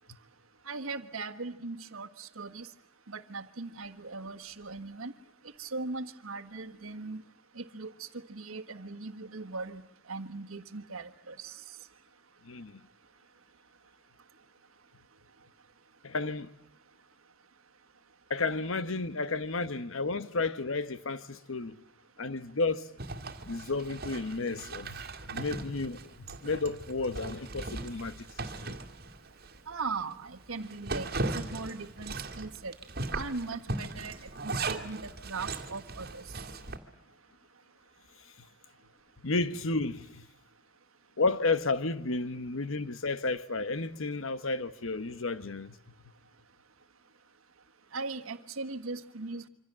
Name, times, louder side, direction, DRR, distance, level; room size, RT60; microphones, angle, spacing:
voice 1, 0.7-2.7 3.1-5.1 5.6-7.2 7.5-9.8 10.1-11.5 29.7-32.7 33.1-36.3 47.9-49.5, right 3 dB, 90° right, 1.5 m, -39 dB
voice 2, 12.4-12.8 16.0-16.5 18.3-21.8 22.2-22.9 23.4-28.8 39.2-40.3 41.2-45.7, left 3 dB, 70° left, 1.1 m, -32 dB
Zipper (clothing), 23.0-29.6 30.0-30.1 30.5-36.8, right 3 dB, 50° right, 2.2 m, -38 dB
26.0 x 25.5 x 7.5 m
head